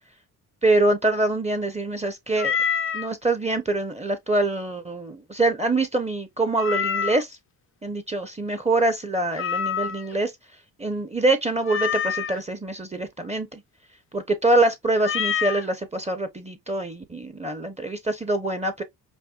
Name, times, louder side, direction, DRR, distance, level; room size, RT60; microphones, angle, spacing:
voice 1, 0.6-2.6 2.9-7.4 7.8-10.3 10.8-13.6 14.1-18.8, right 2 dB, 15° right, 0.8 m, -24 dB
Meow, 2.4-3.1 6.6-7.4 9.4-10.2 11.7-12.4 15.0-15.7, left 7 dB, 35° left, 0.5 m, -26 dB
5.3 x 2.2 x 2.3 m
supercardioid pair, 55°, 40 cm